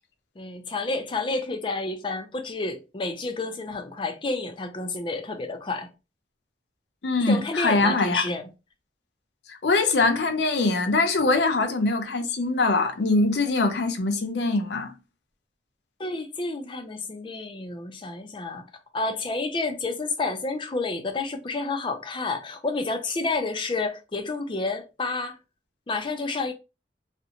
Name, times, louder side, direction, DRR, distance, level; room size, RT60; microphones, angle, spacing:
voice 1, 0.4-5.9 7.3-8.4 16.0-18.6 18.9-25.4 25.9-26.5, left 3 dB, 30° left, 0.4 m, -30 dB
voice 2, 7.0-8.3 9.5-14.9, left 3 dB, 70° left, 0.6 m, -23 dB
2.5 x 2.1 x 2.8 m
head